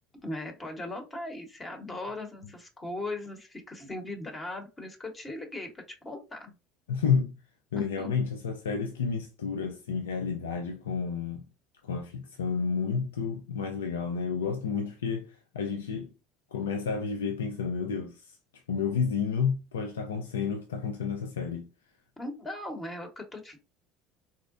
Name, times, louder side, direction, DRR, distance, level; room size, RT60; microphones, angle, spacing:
voice 1, 0.2-6.5 7.7-8.1 22.2-23.6, left 2 dB, 25° left, 1.0 m, -38 dB
voice 2, 6.9-7.4 7.7-11.4 11.8-16.1 16.5-18.4 18.7-21.7, left 6 dB, 90° left, 0.4 m, -31 dB
3.7 x 2.0 x 2.5 m
hypercardioid pair, 70°, 0 cm